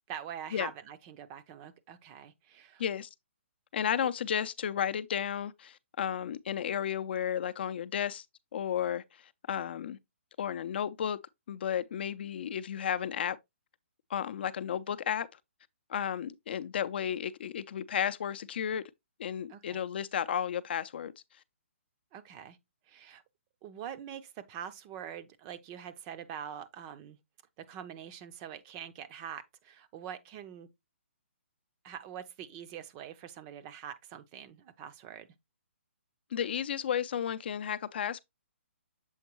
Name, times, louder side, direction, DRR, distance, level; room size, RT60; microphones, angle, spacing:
voice 1, 0.1-2.8 19.5-19.8 22.1-22.6 22.9-23.2 23.6-27.2 27.6-30.7 31.8-35.3, right 9 dB, 25° right, 0.5 m, -44 dB
voice 2, 2.8-3.1 3.7-8.2 8.5-9.0 9.5-10.0 10.4-11.2 11.5-13.4 14.1-15.3 15.9-18.8 19.2-21.1 36.3-38.2, left 9 dB, 50° left, 0.5 m, -33 dB
7.2 x 4.4 x 2.9 m
hypercardioid pair, 155°, 7 cm